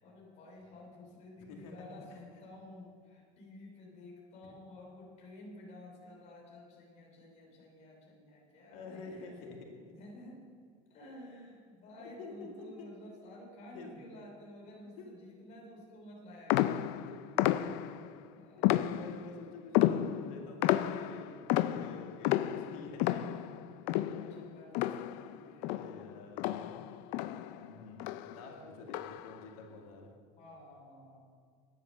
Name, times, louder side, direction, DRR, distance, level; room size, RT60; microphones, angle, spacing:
voice 1, 0.0-9.3 9.9-10.4 10.9-16.9 18.3-19.1 23.9-25.8 27.1-27.7 28.3-28.7 30.4-31.3, left 1 dB, 40° left, -2 dB, 3.2 m, -52 dB
voice 2, 1.3-1.7 2.1-2.2 4.4-4.5 8.7-9.9 12.2-12.9 13.7-14.0 15.0-15.1 17.1-17.2 18.6-18.7 18.9-23.5 25.3-27.0 27.5-28.0 28.3-30.1 30.4-30.5, left 3 dB, 80° left, 2 dB, 2.3 m, -49 dB
sound 1, 16.5-18.1 18.6-19.4 19.7-25.4 25.6-27.7 28.0-28.4 28.9-29.4, left 13 dB, 60° left, 0.5 m, -31 dB
10.5 x 9.2 x 6.4 m, 2.2 s
cardioid pair, 150°, 17 cm